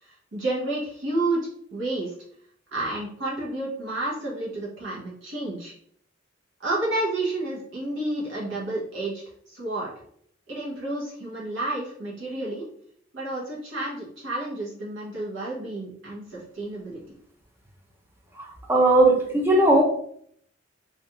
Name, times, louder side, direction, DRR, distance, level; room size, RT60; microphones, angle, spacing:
voice 1, 0.0-2.1 2.7-5.7 6.6-9.9 10.5-12.7 13.1-17.0, right 2 dB, 65° right, -5 dB, 0.8 m, -30 dB
voice 2, 18.4-19.8, right 2 dB, 10° right, 0 dB, 0.4 m, -18 dB
2.4 x 2.3 x 2.8 m, 0.64 s
head